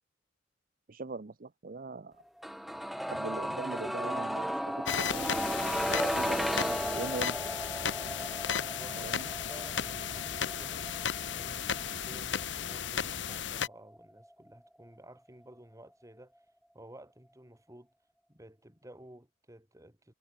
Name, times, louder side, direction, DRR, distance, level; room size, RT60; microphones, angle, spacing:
voice 1, 0.9-2.2 3.1-5.3 5.7-7.4 8.5-9.3, right 3 dB, 45° right, 0.7 m, -42 dB
sound 1, 2.4-14.3 14.5-14.6, equal, ahead, 0.5 m, -35 dB
sound 2, 4.9-13.7, left 7 dB, 65° left, 1.3 m, -34 dB
voice 2, 8.7-10.9 11.3-16.3 16.7-17.9 18.3-20.1, right 1 dB, 15° right, 3.2 m, -53 dB
head